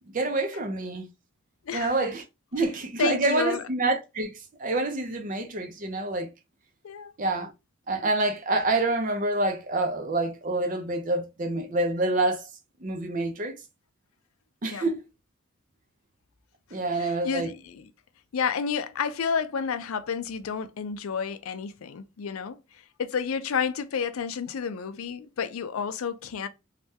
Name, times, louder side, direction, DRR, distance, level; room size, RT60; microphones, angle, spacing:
voice 1, 0.1-1.1 1.7-2.2 2.5-4.3 4.6-6.3 7.2-7.5 7.9-12.5 12.8-13.5 14.6-15.0 16.7-17.5, right 2 dB, 40° right, 0.6 m, -27 dB
voice 2, 3.0-3.6 6.8-7.1 14.7-14.9 16.9-17.9 18.3-22.6 23.0-26.5, left 6 dB, 80° left, 0.4 m, -30 dB
3.3 x 2.2 x 2.7 m
head